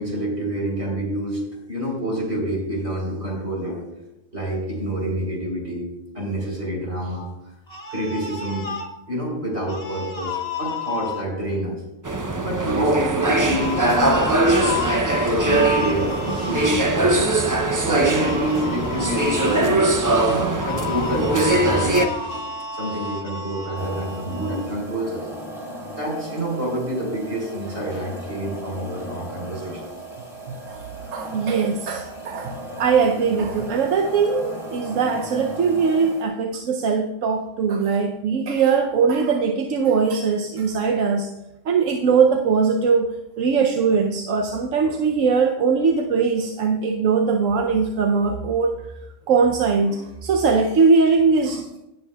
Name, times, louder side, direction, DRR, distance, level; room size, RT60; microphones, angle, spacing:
voice 1, 0.0-1.4 1.7-3.8 4.3-5.9 6.1-7.3 7.9-8.7 9.1-11.8 12.4-14.7 15.2-25.3 25.9-29.9, right 1 dB, 55° right, -3 dB, 4.1 m, -28 dB
sound 1, 7.7-8.9 9.6-11.2 13.6-16.8 18.2-19.6 20.6-24.7, left 5 dB, 50° left, 1.4 m, -31 dB
sound 2, 12.0-22.1, right 2 dB, 30° right, 0.3 m, -21 dB
sound 3, 23.8-36.3, right 1 dB, ahead, 3.1 m, -36 dB
voice 2, 31.1-41.3 41.7-48.8 49.3-51.8, right 5 dB, 85° right, 3 dB, 1.1 m, -20 dB
17.0 x 8.0 x 2.3 m, 0.93 s
omnidirectional pair, 1.3 m